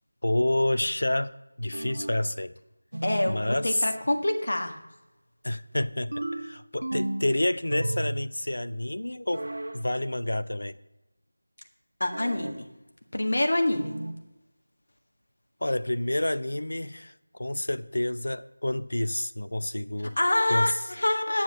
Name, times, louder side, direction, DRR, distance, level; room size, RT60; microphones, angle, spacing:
voice 1, 0.2-1.3 1.6-2.5 3.3-3.9 5.4-9.4 9.7-10.8 15.6-17.1 17.4-20.2 20.5-20.7, left 1 dB, 80° left, 0.6 m, -28 dB
sound 1, 1.7-2.3 2.9-3.4 6.1-7.3 7.7-8.4 9.3-9.8 12.1-12.6 13.7-14.2, right 1 dB, 75° right, 0.9 m, -33 dB
voice 2, 3.0-4.7 12.0-12.6 13.1-14.0 20.2-21.4, left 1 dB, 65° left, 1.7 m, -26 dB
9.9 x 7.3 x 6.3 m
figure-of-eight pair, 175°, 0 cm